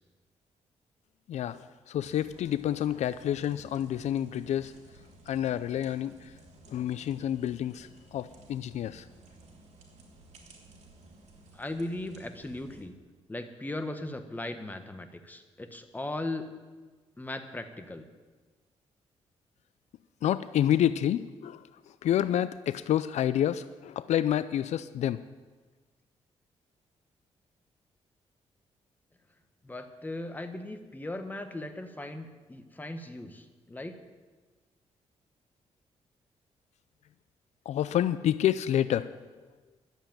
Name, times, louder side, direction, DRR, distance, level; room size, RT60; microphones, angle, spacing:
voice 1, 1.3-4.8 5.3-6.3 6.7-9.1 20.2-25.2 37.7-39.1, left 11 dB, 75° left, 14 dB, 0.4 m, -29 dB
sound 1, 2.0-12.8, right 2 dB, 75° right, 2.7 m, -55 dB
voice 2, 11.5-12.9 13.3-16.4 17.2-18.0 29.6-34.0, left 1 dB, 15° left, 7 dB, 1.3 m, -38 dB
11.5 x 8.1 x 8.9 m, 1.3 s
cardioid pair, 90°, 12 cm